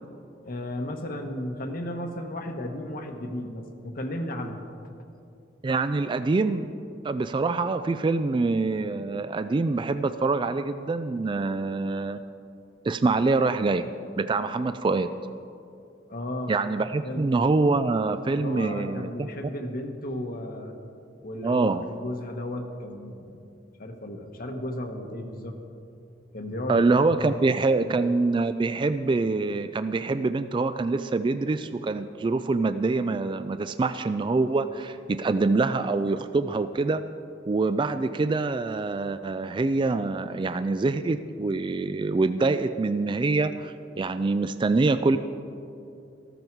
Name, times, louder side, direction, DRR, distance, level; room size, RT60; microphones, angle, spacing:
voice 1, 0.4-4.7 16.1-16.5 17.0-17.3 18.3-20.7 21.2-23.4 23.8-25.6 26.3-28.0, left 1 dB, 55° left, 4 dB, 1.1 m, -34 dB
voice 2, 5.6-6.7 7.0-12.2 12.8-13.9 14.2-15.1 16.5-19.3 21.4-21.8 26.7-37.0 37.5-45.2, right 3 dB, 25° right, 11 dB, 0.3 m, -25 dB
14.0 x 13.0 x 4.6 m, 2.6 s
head